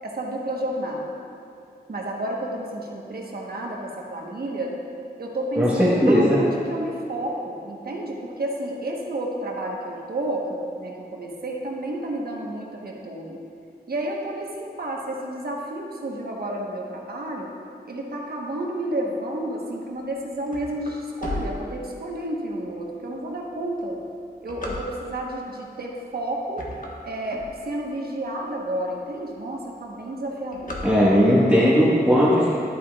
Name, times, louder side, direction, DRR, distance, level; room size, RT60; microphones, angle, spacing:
voice 1, 0.0-1.2 1.9-4.7 5.2-13.4 13.9-17.5 17.8-24.0 24.4-26.7 27.0-30.8, right 1 dB, 65° right, -1 dB, 1.2 m, -31 dB
voice 2, 5.6-6.4 30.8-32.5, equal, 10° right, -9 dB, 1.5 m, -17 dB
sound 1, 20.0-22.3 22.9-23.0 23.6-25.3 26.0-26.2 26.5-28.0 28.5-28.6 28.8-28.9 29.2-29.6 29.8-31.5, left 2 dB, 55° left, 1.3 m, -35 dB
11.0 x 8.7 x 2.4 m, 2.5 s
wide cardioid pair, 100°, 17 cm